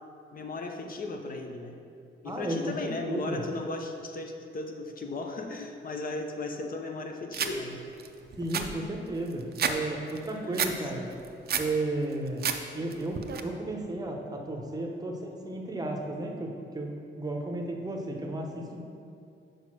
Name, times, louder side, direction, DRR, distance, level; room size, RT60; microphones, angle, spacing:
voice 1, 0.3-1.8 2.2-7.8 10.3-10.7, left 2 dB, 45° left, 3 dB, 0.7 m, -36 dB
voice 2, 2.2-3.4 8.4-11.0 11.6-12.5 12.7-18.9, right 2 dB, 20° right, 1 dB, 0.8 m, -33 dB
sound 1, 7.3-7.5 8.0-8.1 8.3-9.8 10.1-10.7 11.1-11.7 12.1-12.6 12.9-13.4, right 7 dB, 50° right, 0.5 m, -30 dB
6.3 x 5.2 x 6.0 m, 2.5 s
wide cardioid pair, 165°, 21 cm